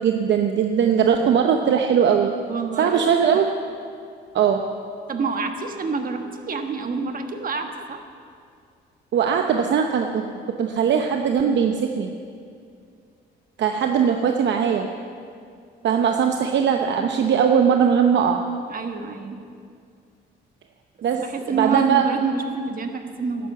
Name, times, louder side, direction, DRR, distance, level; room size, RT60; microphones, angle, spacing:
voice 1, 0.0-2.3 2.8-3.4 4.3-4.7 9.1-12.1 13.6-14.9 15.8-18.4 21.0-21.3 21.6-22.1, right 7 dB, 65° right, 4 dB, 0.8 m, -20 dB
voice 2, 2.5-3.1 5.1-8.0 9.4-9.5 18.7-19.4 21.2-23.5, right 4 dB, 45° right, 6 dB, 1.4 m, -27 dB
11.5 x 10.5 x 7.8 m, 2.3 s
cardioid pair, 90°, 20 cm